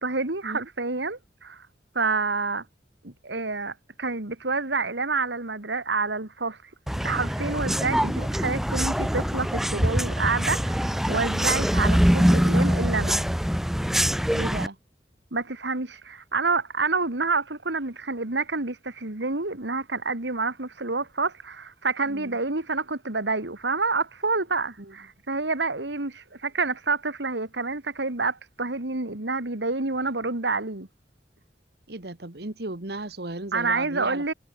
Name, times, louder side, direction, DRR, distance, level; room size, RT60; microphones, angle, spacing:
voice 1, 0.0-1.7 1.9-2.6 3.0-6.6 7.0-13.2 15.3-30.9 33.5-34.3, right 3 dB, 85° right, 2.6 m, -28 dB
sound 1, 6.9-14.7, equal, ahead, 0.5 m, -24 dB
voice 2, 14.3-14.8 22.1-22.4 24.8-24.9 31.9-34.2, right 2 dB, 65° right, 1.8 m, -35 dB
head